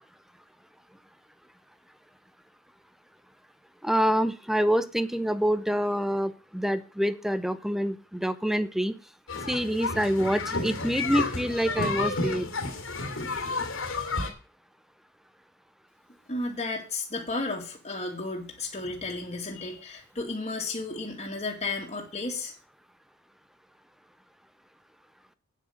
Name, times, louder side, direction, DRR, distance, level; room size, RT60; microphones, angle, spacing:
voice 1, 3.8-9.0 9.5-12.5, equal, ahead, 13 dB, 0.7 m, -26 dB
sound 1, 9.3-14.3, left 3 dB, 70° left, 2.7 m, -31 dB
voice 2, 16.3-22.5, left 3 dB, 30° left, -1 dB, 2.4 m, -33 dB
9.0 x 8.5 x 6.5 m, 0.36 s
head